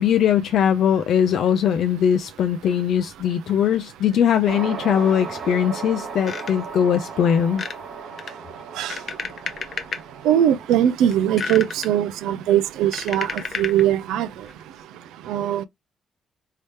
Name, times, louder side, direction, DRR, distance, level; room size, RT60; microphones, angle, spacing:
voice 1, 0.0-7.6, left 8 dB, 70° left, 0.3 m, -20 dB
sound 1, 3.7-3.8 4.1-4.2 4.9-5.7 6.0-6.8 7.5-7.8 8.2-10.0 10.6-10.8 11.1-11.9 12.5-13.9 14.5-14.6, left 5 dB, 45° left, 0.7 m, -32 dB
sound 2, 4.5-13.0, right 5 dB, 60° right, 1.0 m, -37 dB
voice 2, 10.2-14.3 15.3-15.6, right 11 dB, 90° right, 0.3 m, -20 dB
3.1 x 2.7 x 3.2 m
cardioid pair, 90°, 0 cm